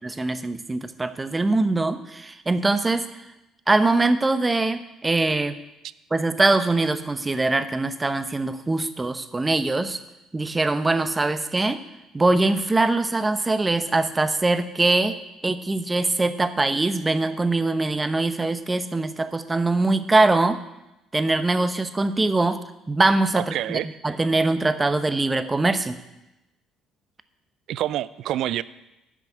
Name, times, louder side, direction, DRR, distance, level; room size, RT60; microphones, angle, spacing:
voice 1, 0.0-3.2 3.7-5.6 6.1-10.0 10.3-11.8 12.1-20.6 21.1-26.0, right 2 dB, 20° right, 11 dB, 0.9 m, -22 dB
voice 2, 23.3-24.0 27.7-28.6, right 12 dB, 65° right, 18 dB, 0.4 m, -27 dB
10.5 x 6.2 x 8.2 m, 0.95 s
hypercardioid pair, 65°, 0 cm